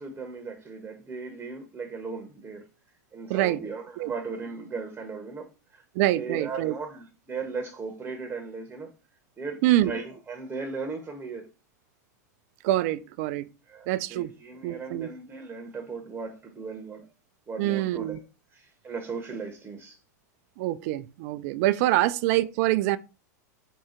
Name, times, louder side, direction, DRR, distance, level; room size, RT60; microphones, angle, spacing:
voice 1, 0.0-2.7 3.1-5.8 6.1-8.9 9.4-11.5 13.7-17.0 17.5-18.2 18.5-20.0, right 4 dB, 15° right, 0.8 m, -37 dB
voice 2, 3.3-3.6 4.0-4.1 6.0-6.7 9.6-9.9 12.6-13.5 13.9-14.3 14.6-15.1 17.6-18.2 20.6-23.0, right 15 dB, 55° right, 0.3 m, -25 dB
3.7 x 2.3 x 4.3 m
hypercardioid pair, 105°, 9 cm